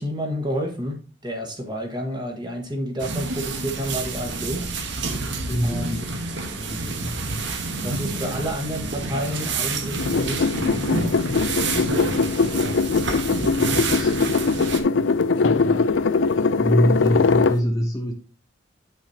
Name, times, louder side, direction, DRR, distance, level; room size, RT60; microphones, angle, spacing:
voice 1, 0.0-4.7 5.6-6.0 7.8-11.1, equal, 20° right, 1.4 m, -30 dB
sound 1, 3.0-14.8, right 3 dB, 65° right, 1.1 m, -28 dB
voice 2, 5.5-6.1 6.6-7.2 11.3-11.5 13.5-14.2 15.4-16.0 16.4-18.1, equal, 15° left, 0.8 m, -26 dB
sound 2, 10.0-17.6, left 4 dB, 70° left, 0.5 m, -21 dB
9.4 x 5.8 x 2.8 m
head